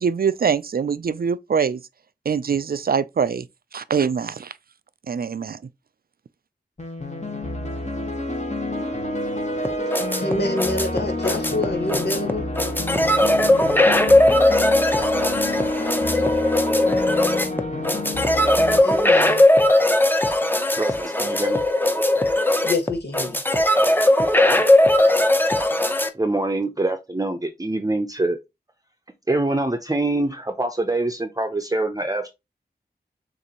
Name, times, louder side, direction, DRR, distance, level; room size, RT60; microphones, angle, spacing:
voice 1, 0.0-1.8 2.3-3.5 3.7-4.5 5.1-5.6, right 6 dB, 60° right, 0.4 m, -23 dB
sound 1, 6.8-18.8, left 1 dB, 40° left, 1.4 m, -28 dB
sound 2, 9.6-26.1, left 1 dB, 10° left, 0.7 m, -19 dB
voice 2, 10.2-12.5 18.8-19.4 22.6-23.4, left 2 dB, 80° left, 1.6 m, -27 dB
voice 3, 20.8-21.6 26.1-28.4 29.3-32.3, right 2 dB, 20° right, 0.7 m, -24 dB
6.6 x 2.6 x 2.9 m
wide cardioid pair, 50°, 17 cm